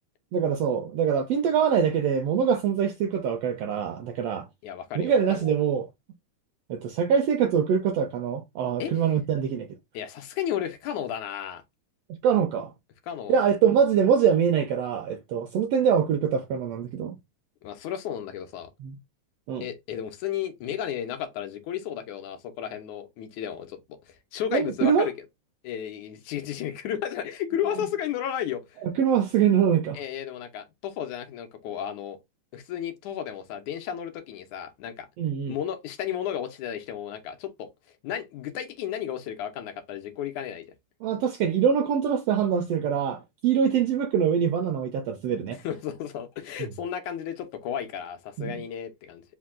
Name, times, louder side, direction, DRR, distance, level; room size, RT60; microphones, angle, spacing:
voice 1, 0.3-4.5 4.9-5.9 6.7-9.7 12.2-12.7 13.3-17.2 18.8-18.9 19.5-19.6 24.5-25.1 28.8-30.0 35.2-35.6 41.0-45.6 46.6-46.7 48.4-48.6, right 7 dB, 80° right, 1.4 m, -24 dB
voice 2, 4.6-5.5 8.8-9.0 9.9-11.6 13.1-13.4 17.6-18.7 19.6-23.8 24.1-25.1 25.6-28.8 29.9-32.2 32.5-35.1 35.5-37.7 38.0-40.7 45.6-49.2, left 10 dB, 80° left, 2.2 m, -33 dB
5.1 x 2.2 x 3.5 m
omnidirectional pair, 3.4 m